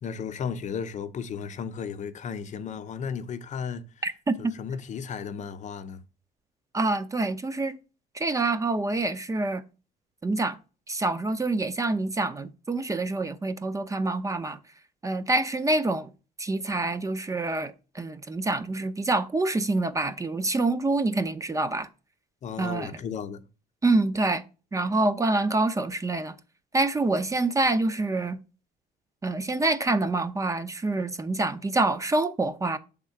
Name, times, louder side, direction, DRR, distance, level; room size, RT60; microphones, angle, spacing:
voice 1, 0.0-3.9 4.4-6.0 22.4-23.5, left 6 dB, 45° left, 0.7 m, -34 dB
voice 2, 4.0-4.5 6.7-7.8 8.1-9.6 10.2-10.6 10.9-14.6 15.0-16.1 16.4-21.9 22.6-22.9 23.8-24.4 24.7-26.3 26.7-28.4 29.2-32.8, right 2 dB, 20° right, 0.6 m, -26 dB
6.3 x 3.6 x 5.7 m
cardioid pair, 110°, 17 cm